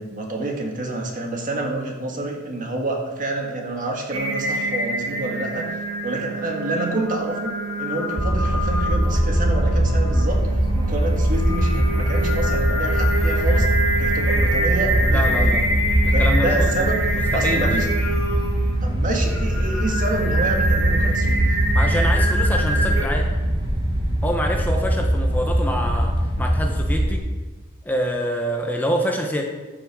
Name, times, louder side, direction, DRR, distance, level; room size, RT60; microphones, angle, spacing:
voice 1, 0.0-5.7 6.0-10.4 10.8-13.7 14.0-15.6 16.1-17.1 17.3-17.9 18.8-21.5, right 2 dB, 40° right, 1 dB, 1.6 m, -28 dB
Singing, 4.1-23.0, right 1 dB, 75° right, 2.1 m, -26 dB
sound 1, 8.2-27.2, right 1 dB, 25° right, 1.2 m, -21 dB
voice 2, 15.0-15.7 16.0-16.9 17.1-17.8 21.7-23.3 24.2-27.2 27.8-29.4, equal, 10° left, 1 dB, 0.8 m, -26 dB
13.0 x 6.1 x 4.8 m, 1.3 s
head